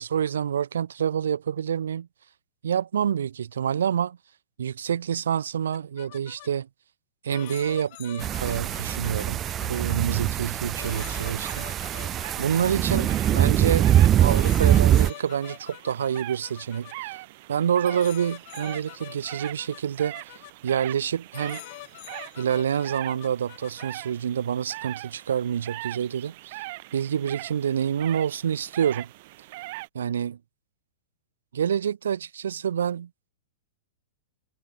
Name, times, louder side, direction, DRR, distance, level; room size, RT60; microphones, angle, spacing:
voice 1, 0.0-2.1 2.6-4.2 4.6-6.7 7.2-12.0 12.4-13.9 14.2-17.2 17.5-20.2 20.6-21.6 22.4-26.6 26.9-29.1 29.9-30.4 31.5-33.1, right 8 dB, 80° right, 0.7 m, -27 dB
sound 1, 5.7-6.5 7.3-10.0 10.8-13.5 14.3-16.9 17.8-20.5 21.3-23.9, left 24 dB, 50° left, 2.7 m, -44 dB
sound 2, 8.2-15.1, right 11 dB, 30° right, 0.6 m, -23 dB
sound 3, 10.8-29.9, right 20 dB, 55° right, 3.2 m, -42 dB
hypercardioid pair, 120°, 0 cm